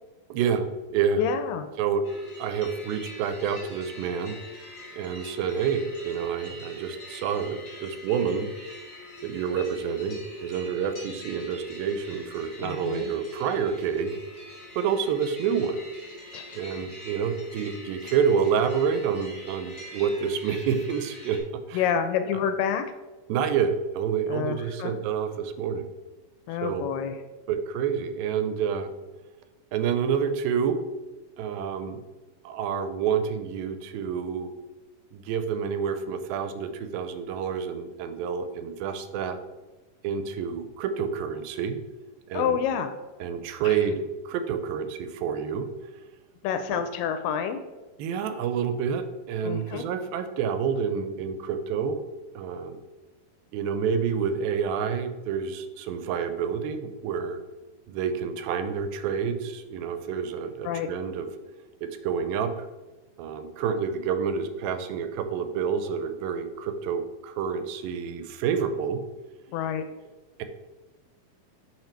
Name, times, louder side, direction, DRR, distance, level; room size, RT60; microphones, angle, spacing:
voice 1, 0.3-1.2 1.8-2.0 2.4-4.4 4.9-8.5 9.2-14.2 14.8-15.8 16.5-21.4 21.7-21.9 23.3-25.9 26.6-26.9 27.5-28.9 29.7-30.8 31.4-32.0 32.4-34.5 35.1-39.4 40.0-41.8 42.3-42.6 43.2-45.7 46.7-46.8 48.0-52.0 52.4-52.8 53.5-57.4 57.9-61.3 61.8-62.7 63.2-69.0 70.4-70.5, right 7 dB, 85° right, 9 dB, 2.4 m, -28 dB
voice 2, 1.2-1.7 12.6-13.1 16.3-16.6 21.7-22.8 24.3-24.9 26.5-27.1 42.3-42.9 43.6-43.7 46.4-47.6 49.4-49.9 60.6-60.9 69.5-69.8, left 8 dB, 80° left, 8 dB, 2.1 m, -28 dB
sound 1, 2.0-21.4, left 1 dB, 65° left, 0.7 m, -44 dB
5.8 x 5.6 x 4.4 m, 1.2 s
omnidirectional pair, 4.2 m